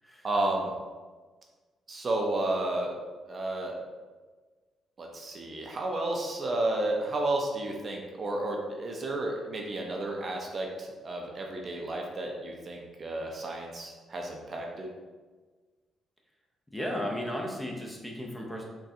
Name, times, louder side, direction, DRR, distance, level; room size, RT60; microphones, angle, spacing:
voice 1, 0.2-0.7 1.9-2.9 3.3-3.8 5.0-14.9, right 2 dB, 40° right, 1 dB, 0.5 m, -32 dB
voice 2, 16.7-18.6, equal, 5° left, -1 dB, 0.6 m, -34 dB
3.9 x 2.3 x 2.6 m, 1.4 s
cardioid pair, 90°, 0 cm